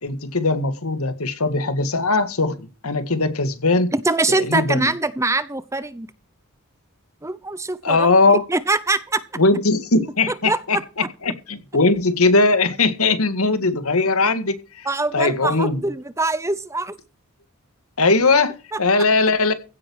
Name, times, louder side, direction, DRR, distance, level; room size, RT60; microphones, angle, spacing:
voice 1, 0.0-3.9 4.3-4.9 7.8-8.4 9.4-14.9 15.1-15.8 18.0-19.5, left 3 dB, 85° left, 2.0 m, -20 dB
voice 2, 3.9-6.1 7.2-8.1 8.5-9.2 10.3-10.8 14.9-17.0, right 2 dB, 15° right, 0.8 m, -23 dB
16.0 x 8.5 x 4.7 m
head